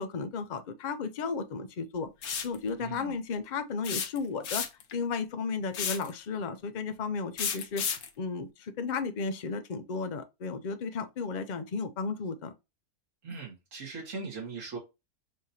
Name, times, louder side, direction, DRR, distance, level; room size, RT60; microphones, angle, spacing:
voice 1, 0.0-2.1 2.4-4.7 4.9-12.5, left 4 dB, 65° left, 0.4 m, -34 dB
sound 1, 2.2-2.6 3.8-4.9 5.7-6.1 7.4-8.1, left 7 dB, 90° left, 1.3 m, -32 dB
voice 2, 2.8-3.2 13.2-14.8, right 4 dB, 60° right, 2.0 m, -40 dB
5.1 x 2.8 x 2.7 m
omnidirectional pair, 1.5 m